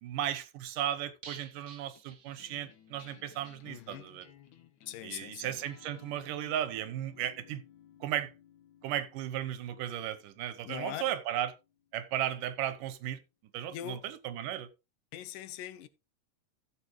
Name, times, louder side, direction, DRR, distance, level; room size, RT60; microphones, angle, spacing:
voice 1, 0.0-4.3 5.0-7.6 8.0-8.3 8.8-11.5 11.9-13.2 13.5-14.7, right 11 dB, 85° right, 2.6 m, -35 dB
sound 1, 1.2-3.0 3.3-3.4 3.7-3.8, right 6 dB, 55° right, 0.9 m, -51 dB
sound 2, 2.0-12.6, left 10 dB, 70° left, 2.6 m, -59 dB
voice 2, 3.6-4.1 4.9-5.6 10.7-11.0 13.7-14.1 15.1-15.9, left 13 dB, 85° left, 2.4 m, -42 dB
14.5 x 7.1 x 3.1 m
omnidirectional pair, 3.7 m